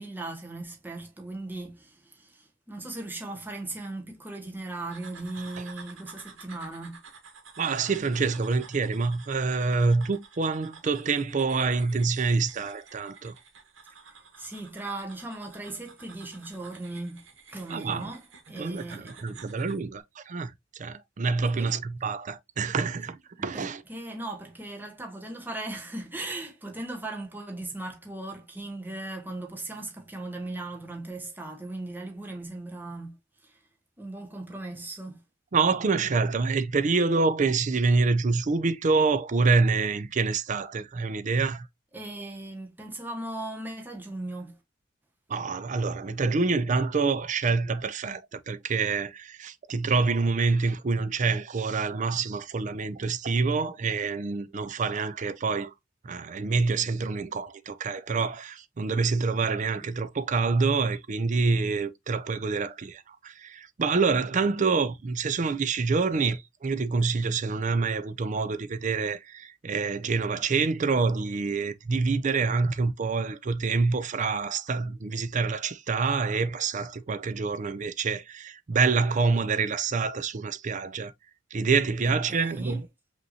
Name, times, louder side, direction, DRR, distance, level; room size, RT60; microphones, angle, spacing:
voice 1, 0.0-7.0 14.1-19.1 21.5-21.8 23.3-33.6 34.0-35.2 41.9-44.6 82.1-82.8, right 2 dB, 10° right, 1.1 m, -38 dB
sound 1, 4.9-19.8, right 5 dB, 85° right, 1.3 m, -50 dB
voice 2, 7.6-13.3 17.7-18.1 18.6-20.5 20.8-23.8 35.5-41.7 45.3-55.7 56.0-81.1 81.5-82.8, right 4 dB, 40° right, 0.4 m, -26 dB
5.3 x 2.9 x 2.7 m
head